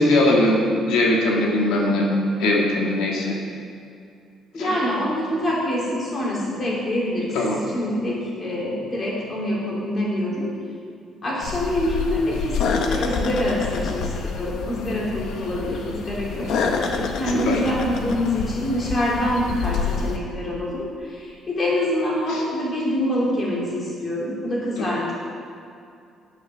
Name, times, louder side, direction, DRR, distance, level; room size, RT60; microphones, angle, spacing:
voice 1, 0.0-2.1 2.4-3.3 4.6-4.7 7.4-7.6 17.5-17.6, left 1 dB, 90° left, -1 dB, 1.8 m, -20 dB
voice 2, 4.5-7.3 7.7-10.5 11.2-25.1, left 1 dB, 25° left, -4 dB, 2.6 m, -25 dB
sound 1, 11.4-20.2, left 5 dB, 60° left, 0.9 m, -28 dB
9.9 x 8.7 x 6.2 m, 2.4 s
cardioid pair, 175°, 0 cm